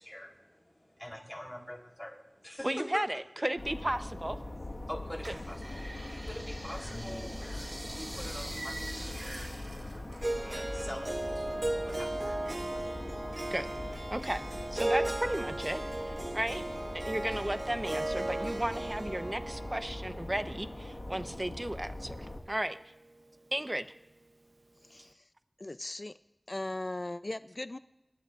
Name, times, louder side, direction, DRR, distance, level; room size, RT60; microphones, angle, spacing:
voice 1, 0.0-3.2 4.8-13.0, left 1 dB, 20° left, 0 dB, 3.7 m, -45 dB
voice 2, 2.6-4.4 13.5-13.7 14.1-14.4 14.7-15.8 16.3-16.6 16.9-22.8 23.5-23.9, right 1 dB, 30° right, 9 dB, 0.9 m, -34 dB
sound 1, 3.6-22.4, left 2 dB, 80° left, 1.6 m, -42 dB
sound 2, 5.2-11.1 11.4-12.7 13.1-13.9 14.4-14.5, right 1 dB, 75° right, 4.9 m, -45 dB
Harp, 10.2-22.4, right 2 dB, 60° right, 0.7 m, -36 dB
voice 3, 24.8-25.2 25.6-26.1 26.5-27.8, left 2 dB, 50° left, 13 dB, 0.5 m, -38 dB
28.0 x 13.0 x 2.6 m, 0.93 s
wide cardioid pair, 55°, 0 cm